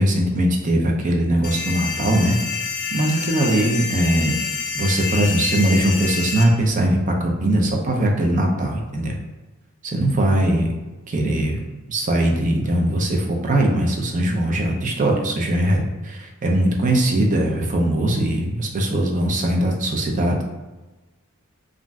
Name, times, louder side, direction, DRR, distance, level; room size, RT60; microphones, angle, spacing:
voice 1, 0.0-2.4 2.9-4.3 4.7-9.2 9.8-10.7 11.1-11.6 11.9-20.4, right 1 dB, 35° right, 1 dB, 0.4 m, -20 dB
sound 1, 1.4-6.4, left 5 dB, 45° left, 0.4 m, -27 dB
2.5 x 2.0 x 3.4 m, 1.2 s
head